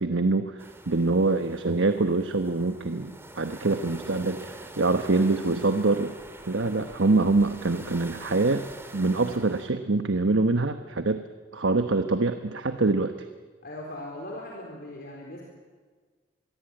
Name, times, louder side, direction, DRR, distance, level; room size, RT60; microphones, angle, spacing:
voice 1, 0.0-6.2 6.5-8.7 8.9-11.2 11.5-13.1, right 3 dB, 90° right, 9 dB, 1.1 m, -25 dB
sound 1, 0.6-9.7, right 2 dB, 15° right, 2.1 m, -45 dB
voice 2, 13.6-15.4, left 1 dB, 55° left, -1 dB, 4.1 m, -39 dB
25.5 x 22.5 x 9.0 m, 1.5 s
head